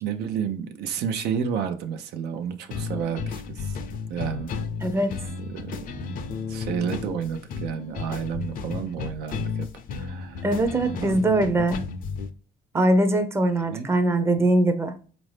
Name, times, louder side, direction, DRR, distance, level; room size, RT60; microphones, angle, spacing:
voice 1, 0.0-3.8 4.1-4.5 5.0-5.8 6.5-9.7 9.9-10.5 10.9-11.2 13.7-14.0, right 7 dB, 75° right, 0.6 m, -31 dB
sound 1, 2.7-12.3, left 5 dB, 55° left, 0.5 m, -33 dB
voice 2, 4.8-5.1 10.4-11.8 12.7-14.9, right 1 dB, 15° right, 0.6 m, -22 dB
4.2 x 2.6 x 3.2 m
cardioid pair, 110°, 17 cm